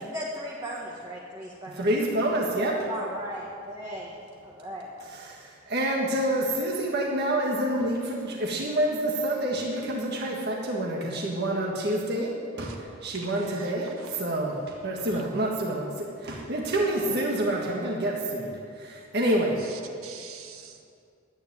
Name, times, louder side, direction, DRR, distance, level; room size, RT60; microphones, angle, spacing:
voice 1, 0.0-1.8 2.9-4.1 4.4-4.9 19.4-19.5, right 1 dB, 20° right, -4 dB, 1.5 m, -37 dB
voice 2, 1.7-2.9 5.1-19.6, right 1 dB, 50° right, -2 dB, 1.7 m, -28 dB
voice 3, 13.2-14.2 17.0-17.2 19.7-20.8, right 4 dB, 80° right, 4 dB, 1.4 m, -44 dB
12.0 x 9.6 x 9.4 m, 2.3 s
head